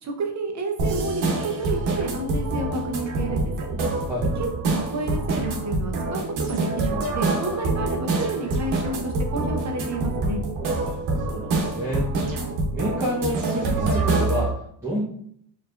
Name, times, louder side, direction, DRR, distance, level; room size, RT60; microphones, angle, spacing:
voice 1, 0.0-3.7 4.4-10.4, right 2 dB, 35° right, 3 dB, 0.8 m, -30 dB
sound 1, 0.8-14.5, right 2 dB, 75° right, 1.1 m, -26 dB
voice 2, 11.3-12.1 12.7-15.0, equal, 5° right, -10 dB, 1.2 m, -29 dB
4.4 x 3.2 x 2.6 m, 0.66 s
cardioid pair, 105°, 46 cm